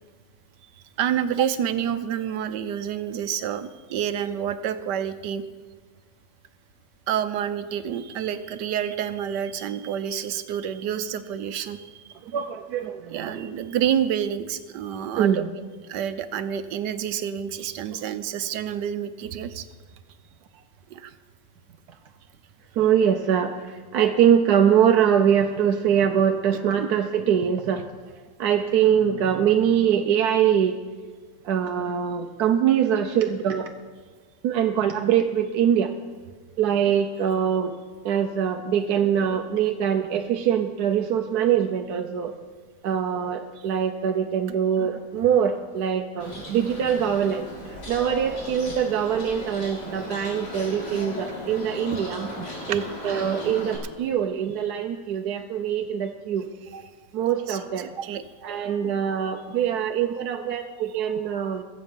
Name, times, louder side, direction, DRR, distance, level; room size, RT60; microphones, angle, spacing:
voice 1, 1.0-5.4 7.1-12.0 13.1-15.4 15.8-19.7 20.9-21.1 26.8-26.9 51.9-52.0 52.4-52.8 57.5-58.2, right 9 dB, 90° right, 11 dB, 1.4 m, -28 dB
voice 2, 12.2-13.4 15.2-15.5 22.8-27.9 28.4-30.8 31.4-33.7 34.4-35.9 36.6-37.7 38.0-42.3 42.8-56.8 57.1-57.9 58.4-61.6, right 8 dB, 70° right, 4 dB, 1.2 m, -23 dB
Bird, 46.2-53.8, left 1 dB, 80° left, 3.9 m, -37 dB
22.5 x 7.8 x 5.3 m, 1.4 s
omnidirectional pair, 1.8 m